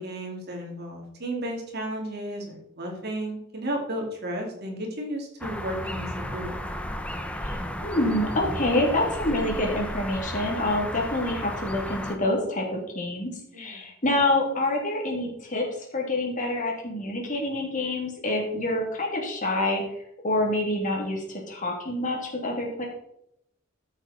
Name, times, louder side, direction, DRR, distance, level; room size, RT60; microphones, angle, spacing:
voice 1, 0.0-6.5 13.5-13.9, right 1 dB, 55° right, 1 dB, 2.8 m, -33 dB
sound 1, 5.4-12.2, equal, 5° left, 0.9 m, -34 dB
voice 2, 7.4-13.3 13.6-15.6 15.9-19.8 20.2-22.9, left 1 dB, 40° left, -1 dB, 2.9 m, -27 dB
14.5 x 7.2 x 4.3 m, 0.79 s
head